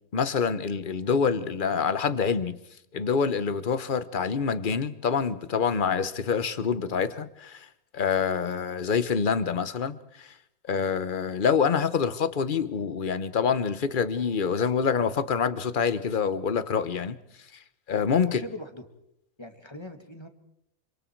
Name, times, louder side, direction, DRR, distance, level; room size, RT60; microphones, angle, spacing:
voice 1, 0.1-2.6 2.9-7.7 7.9-10.3 10.7-17.2 17.9-18.4, left 6 dB, 40° left, 1.1 m, -26 dB
voice 2, 18.2-18.9 19.4-20.3, left 1 dB, 20° left, 2.2 m, -40 dB
27.0 x 26.0 x 4.6 m
omnidirectional pair, 1.5 m